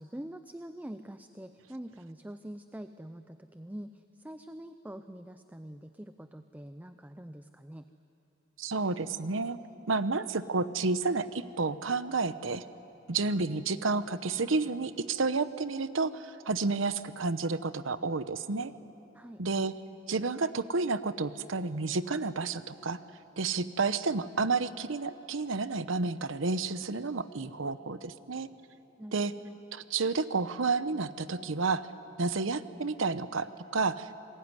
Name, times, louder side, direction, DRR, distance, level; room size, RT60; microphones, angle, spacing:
voice 1, 0.0-7.9 19.1-19.4 29.0-29.6, right 1 dB, 10° right, 9 dB, 0.6 m, -45 dB
voice 2, 8.6-9.6 9.9-12.6 13.1-18.7 19.4-19.7 20.1-23.0 23.4-28.5 29.1-29.3 29.7-31.9 32.2-34.1, right 3 dB, 80° right, 13 dB, 0.9 m, -30 dB
27.0 x 21.0 x 9.7 m, 3.0 s
head